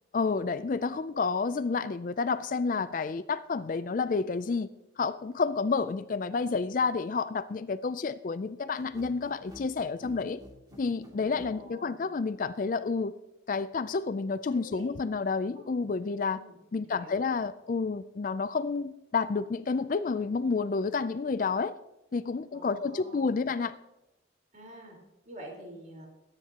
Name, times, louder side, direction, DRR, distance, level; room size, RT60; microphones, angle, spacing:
voice 1, 0.1-4.7 5.0-10.4 10.8-13.1 13.5-16.4 16.7-21.7 22.1-23.7, left 4 dB, 45° left, 14 dB, 0.4 m, -30 dB
sound 1, 8.8-11.6, left 1 dB, 20° right, 2.6 m, -49 dB
voice 2, 11.1-12.0 14.4-14.9 15.5-15.7 16.3-17.3 22.5-23.4 24.5-25.0 25.3-26.1, equal, 40° right, -1 dB, 4.1 m, -48 dB
21.5 x 9.8 x 2.9 m, 0.94 s
head